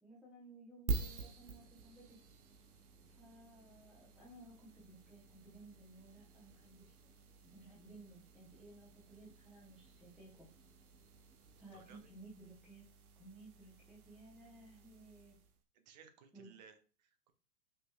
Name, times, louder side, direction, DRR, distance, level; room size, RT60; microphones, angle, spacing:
voice 1, 0.0-2.2 3.1-7.1 7.4-10.5 11.6-12.8 13.2-15.4 16.3-16.5, right 2 dB, ahead, -8 dB, 0.8 m, -58 dB
sound 1, 0.9-15.6, right 4 dB, 60° right, 0.8 m, -48 dB
voice 2, 15.7-17.3, right 7 dB, 30° right, 8 dB, 0.4 m, -61 dB
5.1 x 3.1 x 2.3 m, 0.37 s
hypercardioid pair, 115°, 48 cm